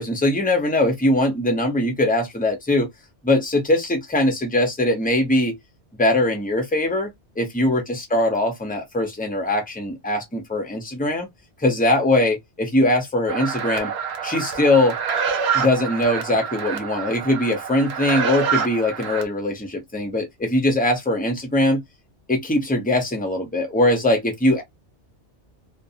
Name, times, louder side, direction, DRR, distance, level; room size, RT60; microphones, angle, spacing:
voice 1, 0.0-2.9 3.2-5.5 5.9-7.1 7.4-11.3 11.6-13.9 14.2-14.9 15.5-21.8 22.3-24.6, left 1 dB, 10° left, 0.6 m, -21 dB
sound 1, 13.3-19.2, right 6 dB, 70° right, 0.8 m, -27 dB
2.5 x 2.1 x 2.6 m
omnidirectional pair, 1.2 m